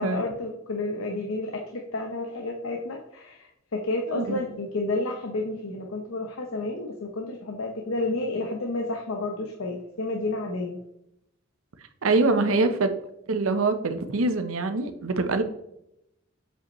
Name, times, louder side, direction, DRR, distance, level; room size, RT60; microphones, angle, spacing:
voice 1, 0.0-10.8 12.4-12.7, left 2 dB, 80° left, 2 dB, 0.8 m, -31 dB
voice 2, 12.0-12.9 13.3-15.4, right 3 dB, 90° right, 9 dB, 0.7 m, -24 dB
7.7 x 5.2 x 3.1 m, 0.80 s
head